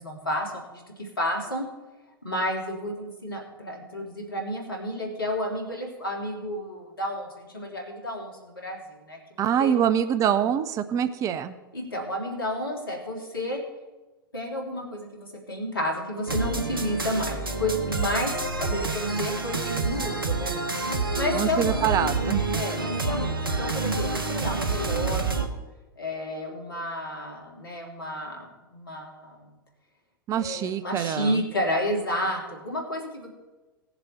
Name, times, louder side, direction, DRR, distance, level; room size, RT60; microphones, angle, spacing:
voice 1, 0.0-1.7 2.2-9.7 11.7-13.6 14.3-20.5 21.1-22.1 22.5-25.5 26.0-29.6 30.4-33.3, left 1 dB, 75° left, 0 dB, 2.8 m, -31 dB
voice 2, 9.4-11.6 21.3-22.4 30.3-31.4, right 9 dB, 30° right, 11 dB, 0.7 m, -25 dB
sound 1, 16.3-25.5, right 3 dB, 75° right, 1.3 m, -28 dB
18.0 x 6.9 x 4.3 m, 1.2 s
figure-of-eight pair, 90°, 12 cm